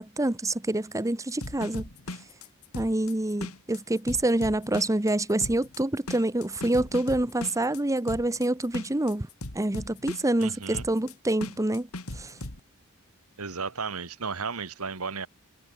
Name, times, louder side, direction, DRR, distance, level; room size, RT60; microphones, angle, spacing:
voice 1, 0.0-1.9 2.7-9.3 9.5-11.9 12.1-12.3, right 1 dB, 15° right, 0.9 m, -27 dB
sound 1, 1.3-12.6, left 2 dB, 80° left, 3.2 m, -39 dB
voice 2, 10.4-10.9 13.4-15.3, right 5 dB, 90° right, 1.8 m, -34 dB
head